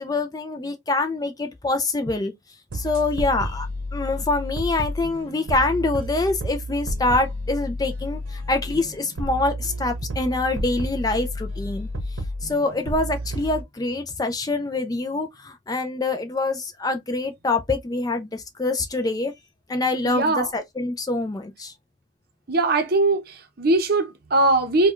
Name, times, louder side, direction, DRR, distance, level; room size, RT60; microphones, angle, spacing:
voice 1, 0.0-2.3 2.7-11.9 12.4-19.3 19.7-21.7, left 2 dB, 20° left, 0.4 m, -25 dB
sound 1, 2.7-13.6, equal, 90° right, 0.7 m, -31 dB
voice 2, 20.0-20.5 22.5-24.9, right 2 dB, 50° right, 0.7 m, -21 dB
4.5 x 2.2 x 2.4 m
head